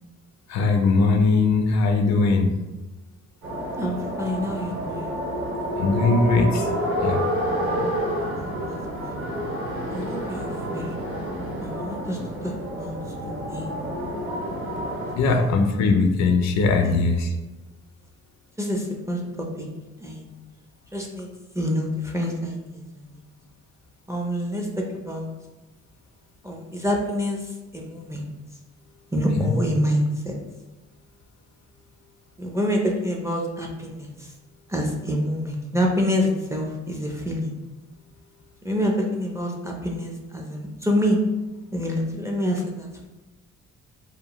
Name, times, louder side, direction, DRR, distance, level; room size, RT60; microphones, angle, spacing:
voice 1, 0.5-2.5 5.8-6.7 7.0-7.2 15.2-17.3 29.4-29.5, left 3 dB, 65° left, 4 dB, 0.4 m, -20 dB
sound 1, 3.4-15.2, equal, 45° right, 0.8 m, -29 dB
voice 2, 3.8-5.1 8.3-9.2 9.9-11.0 11.6-12.5 12.8-13.8 15.3-15.5 16.8-16.9 18.6-19.7 20.0-20.2 20.9-21.3 21.5-23.2 24.1-25.3 26.4-28.2 29.1-30.3 32.4-34.3 34.7-37.5 38.6-41.2 41.7-43.1, equal, 10° right, 0 dB, 0.4 m, -27 dB
2.7 x 2.1 x 2.9 m, 1.1 s
cardioid pair, 90°, 30 cm